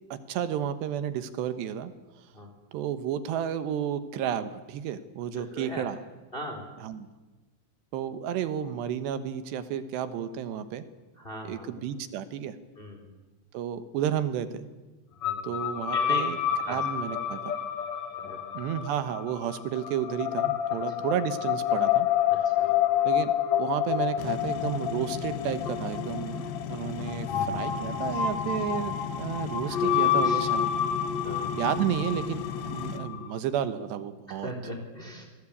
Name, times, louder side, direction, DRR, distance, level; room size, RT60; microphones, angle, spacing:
voice 1, 0.1-1.9 2.7-6.0 6.8-7.1 7.9-10.9 11.4-12.6 13.5-14.7 15.4-16.4 16.7-17.5 18.5-22.1 23.0-23.3 23.6-30.7 31.6-32.4 32.7-34.5, right 9 dB, 70° right, 11 dB, 3.2 m, -32 dB
voice 2, 5.4-5.9 6.3-6.7 11.2-11.7 12.7-13.0 15.2-15.5 15.9-16.2 16.6-16.8 17.3-17.4 18.2-18.4 22.3-22.7 29.6-29.9 30.2-30.4 31.2-31.6 34.3-35.2, equal, 15° left, 4 dB, 3.3 m, -39 dB
sound 1, 15.2-33.4, left 9 dB, 60° left, 1.9 m, -29 dB
sound 2, 24.2-33.0, left 7 dB, 90° left, 4.1 m, -37 dB
26.0 x 20.5 x 8.6 m, 1.2 s
omnidirectional pair, 5.3 m